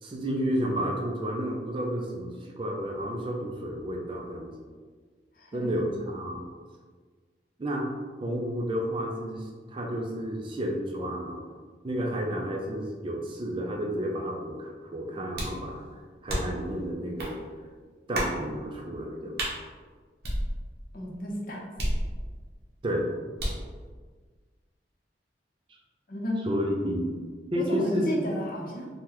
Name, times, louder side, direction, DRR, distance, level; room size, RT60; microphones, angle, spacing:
voice 1, 0.0-4.5 5.5-6.4 7.6-7.9 8.2-11.4 11.8-15.9 16.2-17.5 18.1-19.4 22.8-23.1 26.5-27.1 27.5-28.3, equal, 30° right, 0 dB, 0.4 m, -31 dB
voice 2, 5.3-5.9 20.9-21.8 26.1-26.5 27.5-28.9, left 1 dB, 50° left, -1 dB, 0.6 m, -33 dB
sound 1, 15.3-15.6 16.3-16.7 17.2-17.3 18.1-18.4 19.4-19.6 20.2-20.9 21.8-22.5 23.4-23.7, right 1 dB, 60° right, 0.8 m, -31 dB
3.6 x 2.1 x 2.9 m, 1.5 s
head